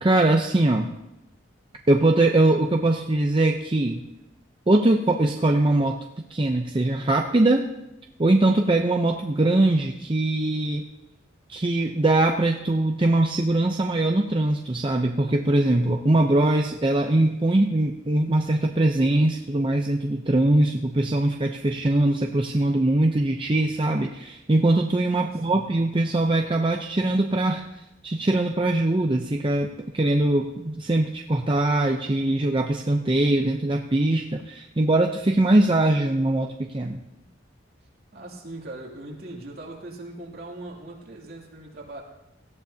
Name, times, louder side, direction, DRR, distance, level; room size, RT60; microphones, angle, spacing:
voice 1, 0.0-0.9 1.9-4.0 4.7-6.0 6.3-7.7 8.2-10.8 11.5-27.6 28.0-29.7 29.9-37.0, right 2 dB, 25° right, 3 dB, 0.6 m, -22 dB
voice 2, 25.1-25.8 38.1-42.0, right 2 dB, 50° right, -3 dB, 2.9 m, -40 dB
17.5 x 14.0 x 2.8 m, 0.91 s
head